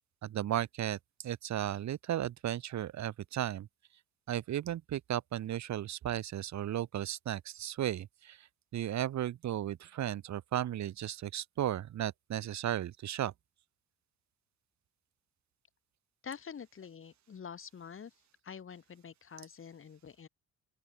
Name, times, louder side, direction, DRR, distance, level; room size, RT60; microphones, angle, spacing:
voice 1, 0.2-1.0 1.2-3.7 4.3-8.4 8.7-13.3, right 12 dB, 65° right, 1.4 m, -35 dB
voice 2, 16.2-18.1 18.4-20.3, left 7 dB, 45° left, 2.5 m, -46 dB
open air
cardioid pair, 90°, 30 cm